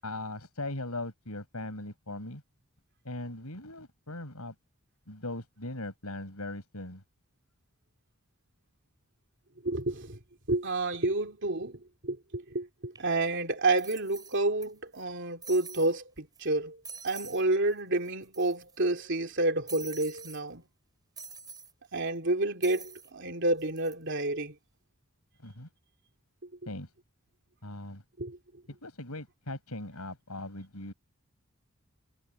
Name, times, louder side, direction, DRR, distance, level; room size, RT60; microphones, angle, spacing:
voice 1, 0.0-2.4 3.0-4.5 5.1-7.0 25.4-25.7 26.7-26.9 27.6-28.0 28.8-30.9, left 2 dB, 85° left, 6.5 m, -39 dB
voice 2, 9.6-10.2 10.5-20.6 21.9-24.5 28.2-28.4, right 2 dB, 55° right, 3.2 m, -30 dB
sound 1, 13.0-13.1 13.8-14.7 14.9-15.0 15.4-15.9 16.4-16.5 16.8-17.4 17.7-17.8 18.0-18.8 19.7-20.4 21.2-21.7 22.6-23.1 23.6-23.9, right 5 dB, 20° right, 5.5 m, -46 dB
head